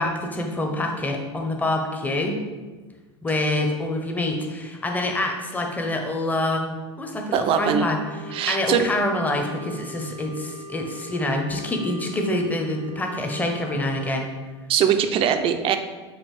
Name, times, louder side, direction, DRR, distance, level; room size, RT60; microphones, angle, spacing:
voice 1, 0.0-2.4 3.2-6.7 7.0-8.0 8.5-14.3, left 1 dB, 10° left, 3 dB, 0.6 m, -26 dB
voice 2, 7.3-7.9 8.3-8.8 14.7-15.8, right 8 dB, 40° right, 8 dB, 0.4 m, -21 dB
Wind instrument woodwind instrument, 7.5-14.2, right 1 dB, 90° right, 0.7 m, -41 dB
5.4 x 2.4 x 3.2 m, 1.3 s
hypercardioid pair, 85°, 15 cm